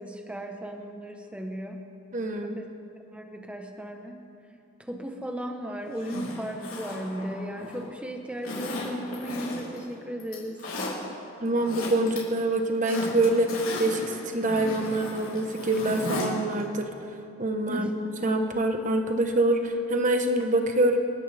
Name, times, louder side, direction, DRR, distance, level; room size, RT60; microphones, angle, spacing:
voice 1, 0.0-1.8 2.4-2.7 3.1-4.1 4.9-11.0 17.7-17.9, equal, 5° right, 3 dB, 1.1 m, -36 dB
voice 2, 2.1-2.6 11.4-13.5 13.8-16.9 17.4-17.9 18.2-21.0, right 2 dB, 40° right, 5 dB, 1.2 m, -25 dB
Zipper (clothing), 5.9-7.9 8.4-9.8 10.2-10.9 11.4-12.2 12.5-16.3 16.6-16.7, left 2 dB, 85° left, 3.8 m, -35 dB
28.5 x 10.5 x 3.5 m, 2.6 s
head